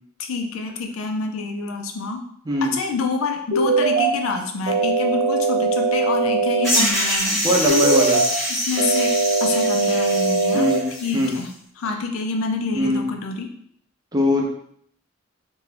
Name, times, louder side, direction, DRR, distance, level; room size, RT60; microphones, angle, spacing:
voice 1, 0.2-2.2 2.6-7.5 8.5-9.1 9.4-10.7 11.0-11.5 11.8-13.5, left 4 dB, 85° left, 4 dB, 0.4 m, -27 dB
voice 2, 2.5-2.8 7.4-8.2 10.5-11.4 12.7-13.1 14.1-14.5, left 1 dB, 20° right, -1 dB, 0.5 m, -21 dB
sound 1, 3.5-4.1 4.7-6.7 7.7-8.3 8.8-10.8, right 4 dB, 60° right, 0.6 m, -20 dB
sound 2, 6.6-11.4, equal, ahead, 0.9 m, -25 dB
2.5 x 2.2 x 3.2 m, 0.67 s
head